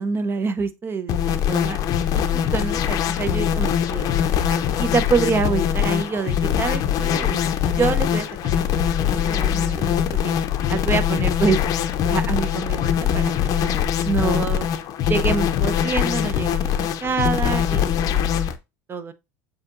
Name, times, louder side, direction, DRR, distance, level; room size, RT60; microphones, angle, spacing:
voice 1, 0.0-1.8 2.1-4.2 4.5-7.4 7.7-10.3 10.7-11.6 12.1-14.7 15.1-18.4 18.9-19.1, right 5 dB, 30° right, 0.6 m, -26 dB
sound 1, 1.1-18.5, left 9 dB, 50° left, 0.6 m, -22 dB
7.2 x 2.8 x 2.5 m
supercardioid pair, 100°, 8 cm